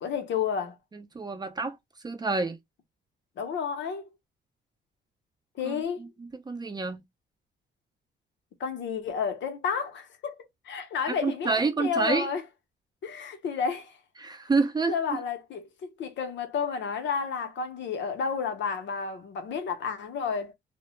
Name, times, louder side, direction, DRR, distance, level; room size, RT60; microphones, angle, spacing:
voice 1, 0.0-0.7 3.4-4.1 5.5-6.0 8.6-10.4 10.6-12.4 13.0-14.0 14.9-20.5, left 6 dB, 65° left, 0.7 m, -31 dB
voice 2, 0.9-1.8 2.0-2.6 5.6-5.7 6.0-7.0 11.1-12.3 14.2-15.2, right 4 dB, 20° right, 0.4 m, -28 dB
2.1 x 2.1 x 2.9 m
cardioid pair, 90°, 20 cm